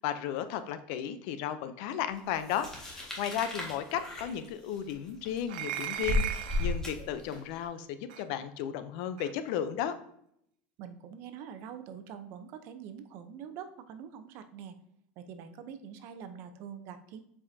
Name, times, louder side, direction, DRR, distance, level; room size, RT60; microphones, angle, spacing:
voice 1, 0.0-9.9, left 9 dB, 65° left, 11 dB, 0.6 m, -34 dB
sound 1, 2.4-7.6, left 2 dB, 10° left, 1.8 m, -35 dB
sound 2, 5.5-6.8 8.1-8.2 9.2-9.3, right 11 dB, 90° right, 0.5 m, -36 dB
voice 2, 10.8-14.7 15.2-17.2, right 8 dB, 55° right, 9 dB, 0.7 m, -45 dB
7.4 x 4.9 x 2.7 m, 0.72 s
supercardioid pair, 140°, 5 cm